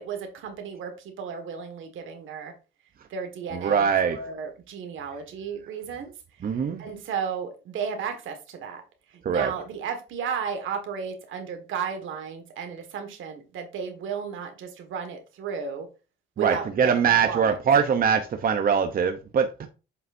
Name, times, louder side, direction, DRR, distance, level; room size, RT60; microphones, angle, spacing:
voice 1, 0.0-2.5 3.1-6.1 6.4-8.8 9.3-15.9 16.4-17.6, right 6 dB, 80° right, 1.7 m, -34 dB
voice 2, 3.5-4.2 6.4-6.8 9.2-9.5 16.4-19.7, right 7 dB, 45° right, 0.8 m, -22 dB
7.8 x 5.6 x 2.6 m
cardioid pair, 90°, 20 cm